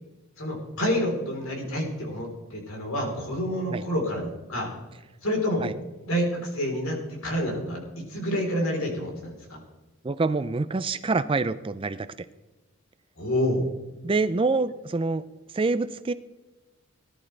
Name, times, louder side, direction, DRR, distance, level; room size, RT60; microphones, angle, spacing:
voice 1, 0.4-4.7 5.2-5.7 6.0-9.6 13.2-13.6, equal, 70° left, 0 dB, 3.8 m, -28 dB
voice 2, 10.0-12.1 14.0-15.2 15.5-16.1, right 3 dB, 25° right, 13 dB, 0.3 m, -26 dB
19.0 x 11.0 x 3.3 m, 1.1 s
head